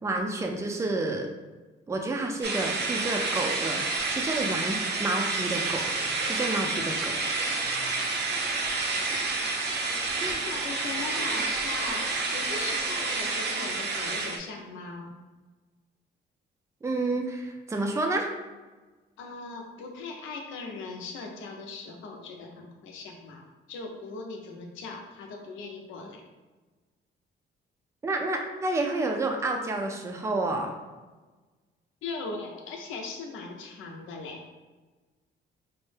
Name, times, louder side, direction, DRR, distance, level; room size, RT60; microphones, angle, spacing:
voice 1, 0.0-1.3 1.9-3.8 4.1-7.1 10.2-10.4 16.8-18.3 28.0-30.7, right 2 dB, 15° right, 2 dB, 0.4 m, -30 dB
sound 1, 2.4-14.4, right 3 dB, 55° right, 0.6 m, -29 dB
voice 2, 10.5-15.1 19.2-26.2 32.0-34.4, left 4 dB, 85° left, 2 dB, 0.7 m, -39 dB
4.4 x 2.1 x 3.2 m, 1.3 s
cardioid pair, 90°, 20 cm